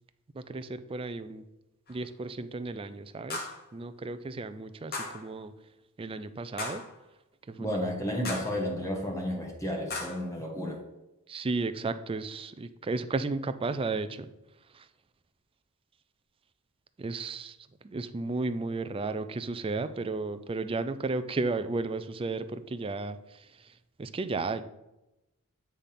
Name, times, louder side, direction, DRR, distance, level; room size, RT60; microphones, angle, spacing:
voice 1, 0.3-1.4 1.9-5.5 6.0-6.8 7.5-7.8 11.3-14.3 14.7-14.9 17.0-17.6 17.8-23.7 24.0-24.6, right 3 dB, 25° right, 11 dB, 0.4 m, -34 dB
sound 1, 1.9-2.0 3.3-3.7 4.9-5.3 6.6-7.0 8.2-8.6 9.9-10.3, left 3 dB, 45° left, 1.4 m, -37 dB
voice 2, 7.6-10.8, equal, 15° left, 0 dB, 1.1 m, -32 dB
8.3 x 3.5 x 5.7 m, 0.94 s
head